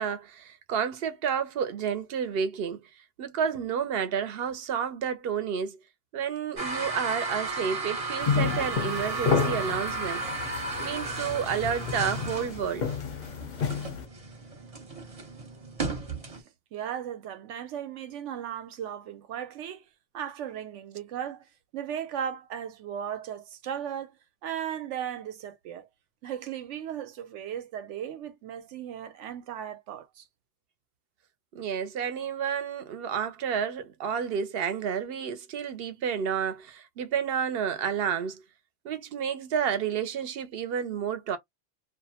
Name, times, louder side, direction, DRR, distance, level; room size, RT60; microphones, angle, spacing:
voice 1, 0.0-2.8 3.2-5.8 6.1-10.2 10.8-12.8 31.5-38.4 38.8-41.4, right 7 dB, 65° right, 0.7 m, -30 dB
sound 1, 6.6-16.4, right 3 dB, 35° right, 0.8 m, -34 dB
sound 2, 8.2-14.0, left 6 dB, 50° left, 0.6 m, -31 dB
voice 2, 16.7-19.9 20.1-21.5 21.7-24.2 24.4-25.9 26.2-30.3, right 9 dB, 85° right, 0.9 m, -36 dB
2.5 x 2.1 x 2.8 m
omnidirectional pair, 1.2 m